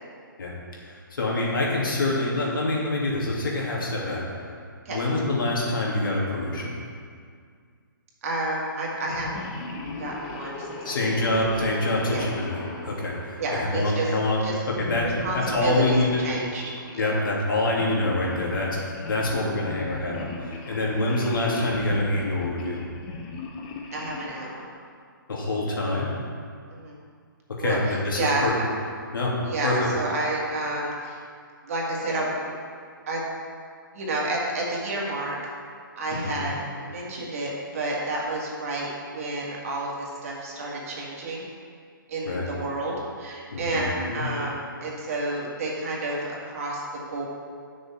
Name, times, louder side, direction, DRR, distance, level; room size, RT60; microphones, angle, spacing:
voice 1, 0.8-4.6 4.9-6.7 10.8-14.4 14.8-15.1 15.3-16.2 17.0-22.8 25.3-26.1 27.6-28.5 29.1-29.4 29.6-29.9 36.1-36.6 42.2-42.5 43.5-44.3, left 2 dB, 70° left, -4 dB, 2.6 m, -26 dB
voice 2, 8.2-9.4 10.0-11.3 12.1-12.3 13.4-14.1 14.4-14.5 15.2-17.1 23.9-24.7 26.7-26.9 27.6-28.4 29.5-31.2 31.6-32.5 33.1-33.2 33.9-35.3 36.0-41.5 42.1-47.3, right 2 dB, 40° right, -4 dB, 2.0 m, -30 dB
sound 1, 9.0-13.9 14.7-17.0 17.7-24.5, left 3 dB, 20° left, 0.7 m, -38 dB
9.6 x 6.4 x 4.4 m, 2.1 s
hypercardioid pair, 165°, 12 cm